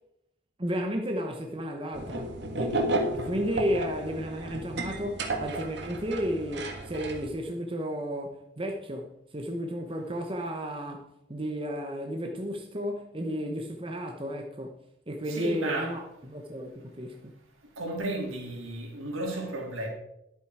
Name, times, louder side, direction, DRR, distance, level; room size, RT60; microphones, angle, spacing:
voice 1, 0.6-2.8 3.1-14.8 15.1-17.3, equal, 25° right, 0.9 m, -33 dB
sound 1, 1.9-7.3, right 2 dB, 55° right, 1.6 m, -33 dB
voice 2, 15.3-16.0 17.8-19.9, right 1 dB, 85° right, 3.6 m, -33 dB
11.5 x 8.3 x 4.7 m
head